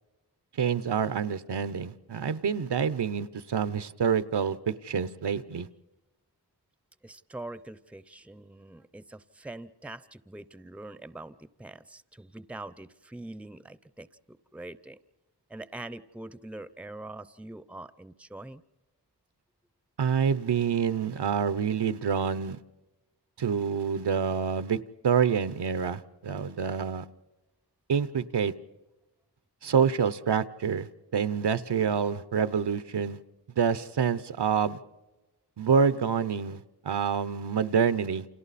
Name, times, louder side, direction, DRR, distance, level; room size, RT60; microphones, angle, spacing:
voice 1, 0.6-5.7 20.0-22.6 23.4-27.1 27.9-28.5 29.6-33.2 33.6-34.8 35.6-38.3, right 7 dB, 75° right, 15 dB, 0.8 m, -27 dB
voice 2, 7.0-15.0 15.5-18.6, right 2 dB, 5° right, 16 dB, 0.6 m, -44 dB
29.5 x 27.0 x 4.2 m, 1.0 s
wide cardioid pair, 85°, 41 cm